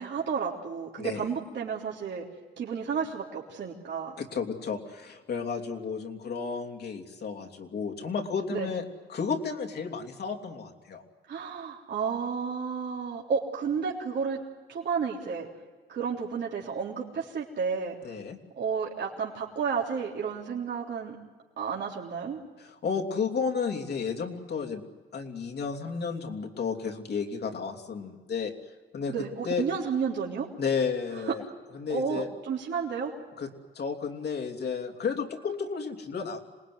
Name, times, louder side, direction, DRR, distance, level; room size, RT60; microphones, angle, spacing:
voice 1, 0.0-2.2 2.6-4.2 8.5-8.7 11.3-14.4 14.7-15.5 15.9-17.9 18.6-21.2 21.6-22.4 29.1-30.5 31.3-31.4 31.9-33.1, right 6 dB, 60° right, -3 dB, 3.6 m, -31 dB
voice 2, 4.2-11.0 18.0-18.4 22.6-24.8 25.1-28.5 28.9-29.1 29.4-29.6 30.6-31.4 31.7-32.3 33.4-33.5 33.7-36.4, left 5 dB, 55° left, 4 dB, 3.2 m, -32 dB
27.0 x 19.5 x 9.5 m, 1.4 s
cardioid pair, 90°, 20 cm